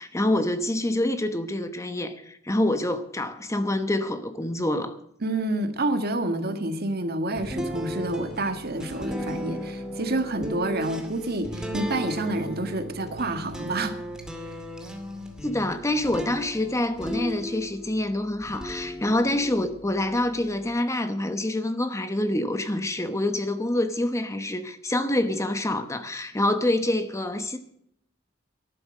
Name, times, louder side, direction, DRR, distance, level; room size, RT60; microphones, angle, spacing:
voice 1, 0.0-5.0 15.4-27.6, left 1 dB, 15° left, 0.9 m, -26 dB
voice 2, 5.2-14.0, right 2 dB, 55° right, 1.7 m, -28 dB
sound 1, 7.4-18.0 18.4-20.7, equal, 5° right, 2.3 m, -36 dB
13.0 x 11.0 x 6.5 m
head